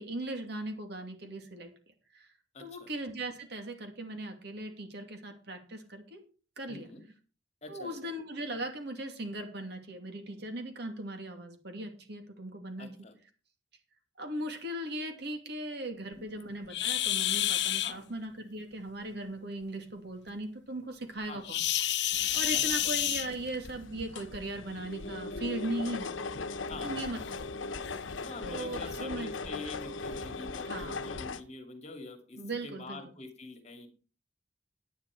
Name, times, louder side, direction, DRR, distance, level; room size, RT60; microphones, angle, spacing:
voice 1, 0.0-1.7 2.1-2.3 2.6-6.2 6.6-6.9 7.7-12.9 14.2-21.6 22.3-26.1 26.7-27.5 28.4-29.5 30.6-31.1 32.4-33.0, right 1 dB, 60° right, 5 dB, 2.5 m, -38 dB
voice 2, 2.5-2.9 6.7-7.1 7.6-8.1 12.8-13.1 16.2-16.4 17.8-18.0 21.3-21.4 22.5-22.8 26.7-27.1 28.2-33.9, left 3 dB, 35° left, 6 dB, 2.2 m, -46 dB
sound 1, 16.7-17.9 21.4-23.7 24.9-25.1 25.7-25.8 26.3-26.4 27.2-27.3 27.8-28.0, left 12 dB, 60° left, 0.9 m, -29 dB
sound 2, 22.1-31.4, left 3 dB, 90° left, 0.9 m, -39 dB
10.5 x 9.9 x 4.8 m, 0.37 s
head